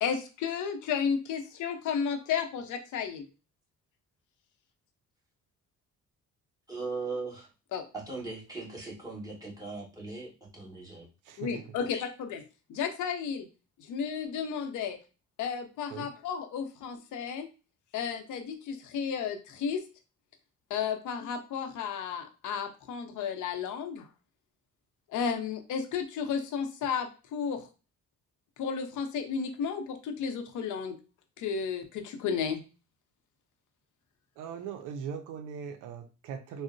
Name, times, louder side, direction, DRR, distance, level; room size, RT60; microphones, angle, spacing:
voice 1, 0.0-3.2 7.7-7.8 11.4-12.4 12.7-13.5 13.9-15.0 15.4-17.5 17.9-19.8 20.7-24.1 25.1-27.6 28.6-31.0 31.4-32.6, left 6 dB, 75° left, 6 dB, 0.7 m, -33 dB
voice 2, 6.7-7.5 7.9-11.1, right 3 dB, 10° right, -4 dB, 1.4 m, -39 dB
voice 3, 34.4-36.6, right 7 dB, 90° right, 8 dB, 0.5 m, -39 dB
3.7 x 2.0 x 2.5 m, 0.32 s
cardioid pair, 90°, 30 cm